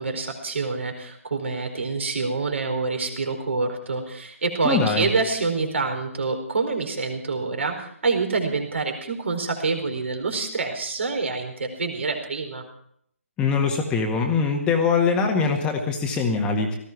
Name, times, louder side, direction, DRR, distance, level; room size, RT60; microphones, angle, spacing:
voice 1, 0.0-12.6, right 4 dB, 55° right, 5 dB, 4.4 m, -26 dB
voice 2, 4.6-5.1 13.4-16.8, left 5 dB, 10° left, 2 dB, 1.7 m, -22 dB
18.5 x 15.5 x 4.7 m, 0.67 s
figure-of-eight pair, 140°, 8 cm